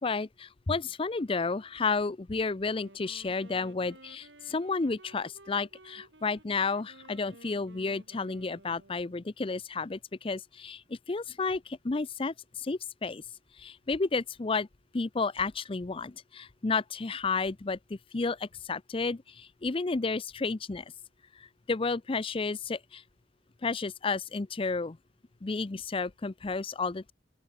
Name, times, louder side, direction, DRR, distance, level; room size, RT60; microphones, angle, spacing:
voice 1, 0.0-13.2 13.6-14.7 14.9-20.9 21.4-23.0 23.6-25.0 25.4-27.1, left 4 dB, 30° left, 0.5 m, -32 dB
Wind instrument woodwind instrument, 2.6-9.3, right 2 dB, 75° right, 3.8 m, -55 dB
open air
head